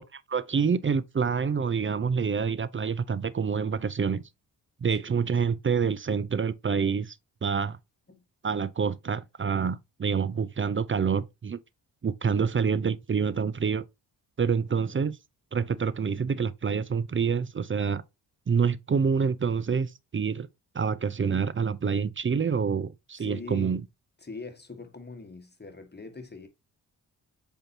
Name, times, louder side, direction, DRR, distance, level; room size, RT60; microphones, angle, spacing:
voice 1, 0.1-4.2 4.8-7.2 7.4-7.8 8.4-11.6 12.0-13.8 14.4-15.2 15.5-18.0 18.5-20.5 20.7-23.8, right 6 dB, 30° right, 0.6 m, -27 dB
voice 2, 23.2-23.8 24.2-26.5, left 4 dB, 20° left, 1.8 m, -42 dB
7.6 x 4.4 x 2.8 m
hypercardioid pair, 40°, 45 cm